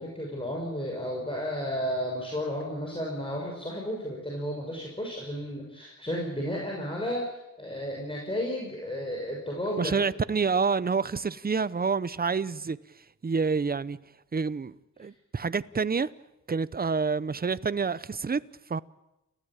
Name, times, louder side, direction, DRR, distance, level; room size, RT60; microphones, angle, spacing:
voice 1, 0.0-10.0, equal, 15° left, 6.4 m, -33 dB
voice 2, 9.8-12.8 13.2-14.0 14.3-16.1 16.5-18.4 18.7-18.8, right 5 dB, 30° right, 0.8 m, -28 dB
29.5 x 15.5 x 9.0 m
wide cardioid pair, 95°, 32 cm